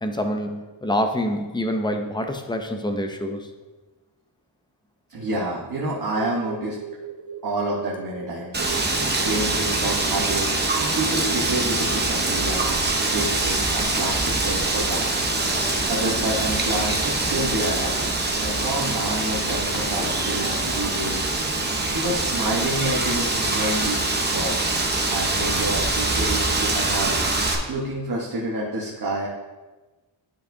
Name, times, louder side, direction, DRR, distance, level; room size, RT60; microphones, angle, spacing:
voice 1, 0.0-3.5, equal, 10° left, 5 dB, 0.4 m, -26 dB
voice 2, 5.1-6.8 7.4-15.5 15.9-18.1 18.4-21.2 21.9-24.5 25.1-29.3, right 1 dB, 50° right, -5 dB, 1.1 m, -29 dB
sound 1, 6.1-8.3 8.6-9.8 10.1-11.8 12.4-13.3, right 8 dB, 70° right, 0.6 m, -37 dB
Wind, 8.5-27.6, right 2 dB, 20° right, 0.7 m, -24 dB
Livestock farm animals working animals, 15.5-21.1, left 1 dB, 55° left, 1.5 m, -38 dB
11.0 x 4.6 x 2.7 m, 1.2 s
wide cardioid pair, 170°, 48 cm